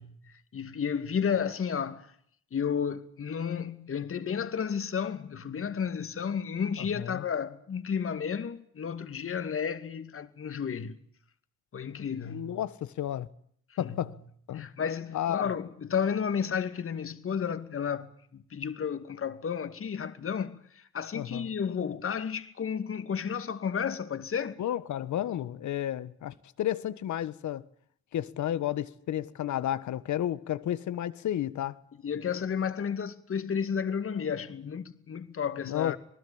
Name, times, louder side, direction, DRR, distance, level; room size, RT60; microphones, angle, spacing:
voice 1, 0.0-2.1 2.5-11.0 11.7-12.6 13.7-14.1 14.5-24.6 32.0-36.0, left 7 dB, 45° left, 2.5 m, -32 dB
voice 2, 6.8-7.2 12.3-13.3 13.8-14.2 14.5-14.7 15.1-15.4 21.1-21.5 24.6-27.6 28.1-31.8 35.6-36.0, left 11 dB, 70° left, 1.6 m, -32 dB
27.0 x 19.5 x 8.8 m
cardioid pair, 90°, 30 cm